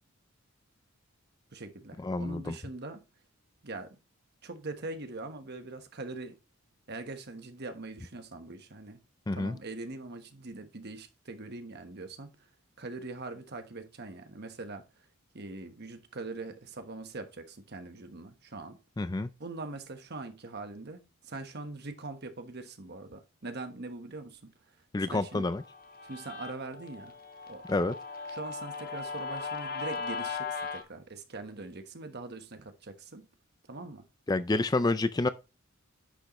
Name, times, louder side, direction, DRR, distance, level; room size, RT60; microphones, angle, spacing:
voice 1, 1.5-3.0 3.6-4.0 4.4-6.4 6.9-9.0 9.3-12.3 12.8-15.1 15.3-18.8 19.4-24.5 25.0-25.4 26.0-27.1 27.5-27.6 28.3-33.3 33.7-34.1, right 3 dB, 50° right, 1.2 m, -42 dB
voice 2, 2.0-2.6 9.3-9.6 19.0-19.3 24.9-25.6 27.7-27.9 34.3-35.3, left 2 dB, 20° left, 0.4 m, -28 dB
Guitar, 25.3-30.8, left 4 dB, 45° left, 1.3 m, -38 dB
10.0 x 6.5 x 3.1 m
head